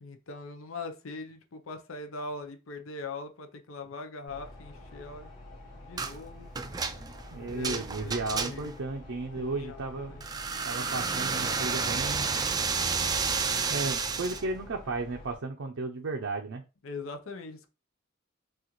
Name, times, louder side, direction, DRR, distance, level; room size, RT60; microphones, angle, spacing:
voice 1, 0.0-5.3 5.8-6.5 7.3-8.7 9.4-9.8 10.1-10.2 16.8-17.7, left 3 dB, 70° left, 0.7 m, -41 dB
sound 1, 4.3-15.3, left 1 dB, 40° left, 2.7 m, -48 dB
sound 2, 6.0-6.2 6.5-8.8 10.2-14.4, right 5 dB, 20° right, 0.3 m, -31 dB
voice 2, 7.3-10.2 10.6-12.3 13.7-16.6, right 3 dB, 65° right, 0.6 m, -34 dB
6.3 x 2.4 x 3.0 m
head